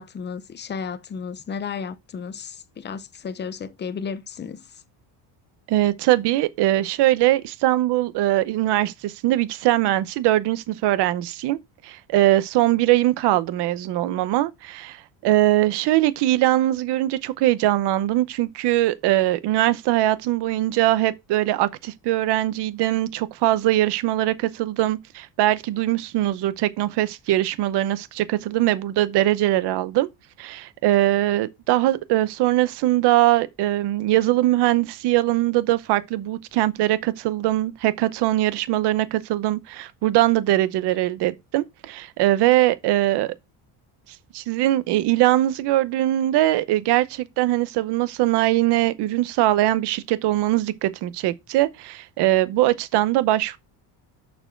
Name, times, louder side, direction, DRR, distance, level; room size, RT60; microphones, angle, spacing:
voice 1, 0.0-4.8, left 6 dB, 25° left, 0.7 m, -33 dB
voice 2, 5.7-30.1 30.4-43.3 44.3-53.6, right 15 dB, 65° right, 0.8 m, -21 dB
6.9 x 6.8 x 4.4 m
cardioid pair, 155°, 44 cm